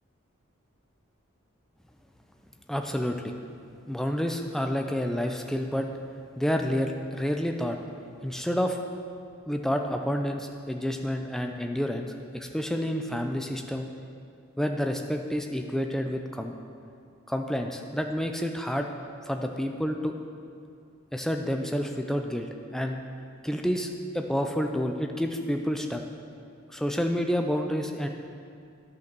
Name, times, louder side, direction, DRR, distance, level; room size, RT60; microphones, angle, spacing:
voice 1, 2.7-3.3 3.9-5.9 6.4-7.8 8.2-8.8 9.5-13.9 14.6-16.5 17.3-18.9 19.2-20.1 21.1-23.0 23.4-26.0 26.7-28.1, equal, ahead, 4 dB, 0.4 m, -29 dB
10.5 x 5.8 x 6.1 m, 2.4 s
head